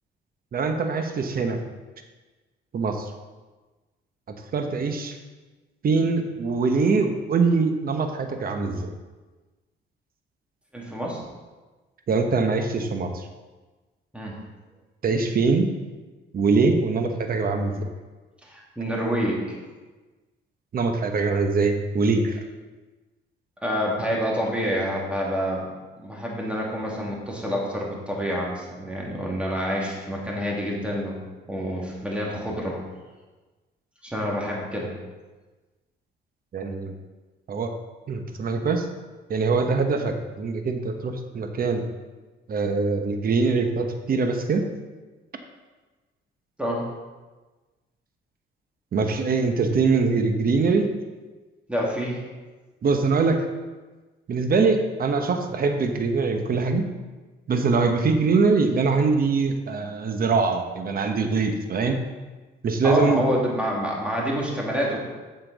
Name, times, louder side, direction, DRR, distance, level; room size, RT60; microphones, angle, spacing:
voice 1, 0.5-1.6 2.7-3.1 4.5-5.2 5.8-8.9 12.1-13.3 15.0-15.7 16.3-17.8 20.7-22.4 36.5-36.9 37.5-37.7 38.1-38.9 39.3-41.8 42.5-44.7 48.9-50.9 52.8-53.4 54.3-56.9 57.5-62.0 62.6-63.2, right 4 dB, 50° right, 6 dB, 1.0 m, -23 dB
voice 2, 10.7-11.2 14.1-14.4 18.4-19.6 23.6-25.7 26.0-31.2 31.5-32.8 34.0-34.9 46.6-46.9 51.7-52.2 62.8-65.0, equal, 5° right, -3 dB, 2.3 m, -27 dB
7.8 x 6.8 x 4.0 m, 1.2 s
cardioid pair, 90°, 20 cm